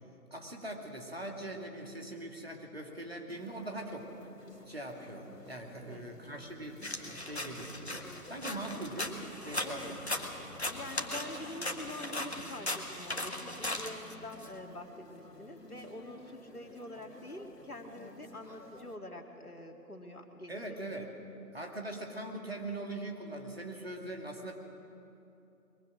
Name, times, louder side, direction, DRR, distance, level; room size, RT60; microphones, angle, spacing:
voice 1, 0.3-4.1 4.7-10.0 20.5-21.1 21.5-24.6, right 1 dB, 40° right, 1 dB, 2.3 m, -42 dB
sound 1, 3.3-19.0, left 2 dB, 85° left, 2.1 m, -54 dB
voice 2, 5.8-6.1 8.4-8.8 9.6-9.9 10.7-20.8, left 1 dB, 65° left, 3 dB, 2.5 m, -46 dB
sound 2, 6.8-14.5, left 1 dB, 45° left, 1.5 m, -38 dB
23.5 x 22.5 x 6.2 m, 2.8 s
figure-of-eight pair, 170°, 47 cm